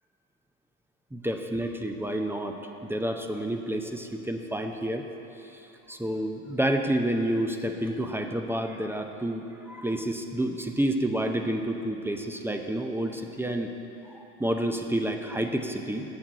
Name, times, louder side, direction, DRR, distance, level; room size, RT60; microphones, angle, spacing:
voice 1, 1.1-5.0 5.4-13.7 14.1-16.0, right 1 dB, 5° right, 4 dB, 0.5 m, -29 dB
7.9 x 5.8 x 7.5 m, 2.9 s
hypercardioid pair, 75°, 44 cm